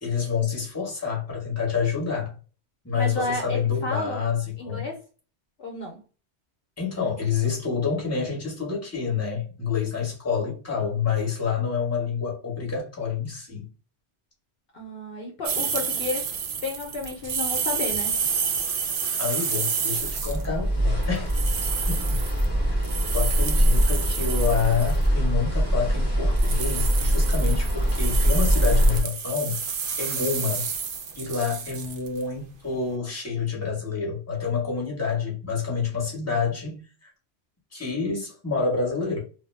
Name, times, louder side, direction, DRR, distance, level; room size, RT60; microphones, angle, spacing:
voice 1, 0.0-2.3 2.8-4.8 6.8-13.7 19.2-21.3 21.9-22.2 23.1-29.6 30.0-30.7 31.1-37.1 37.7-39.2, left 6 dB, 15° left, 1.0 m, -28 dB
voice 2, 3.0-4.3 4.6-5.0 5.6-6.0 14.7-16.3 16.6-18.2, left 2 dB, 60° left, 0.8 m, -32 dB
sound 1, 15.4-20.4 21.0-25.1 26.4-32.2, right 6 dB, 60° right, 0.6 m, -30 dB
sound 2, 20.0-29.0, equal, 10° right, 0.9 m, -23 dB
2.6 x 2.1 x 3.2 m
omnidirectional pair, 1.1 m